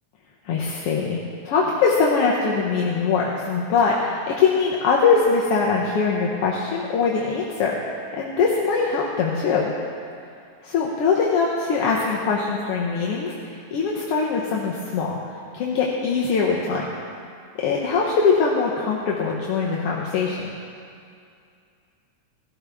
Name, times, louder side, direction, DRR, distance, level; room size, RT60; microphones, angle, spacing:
voice 1, 0.4-7.8 8.2-9.7 10.6-15.2 15.5-16.9 17.6-20.5, left 5 dB, 65° left, -3 dB, 1.6 m, -22 dB
16.5 x 13.0 x 3.5 m, 2.4 s
omnidirectional pair, 3.4 m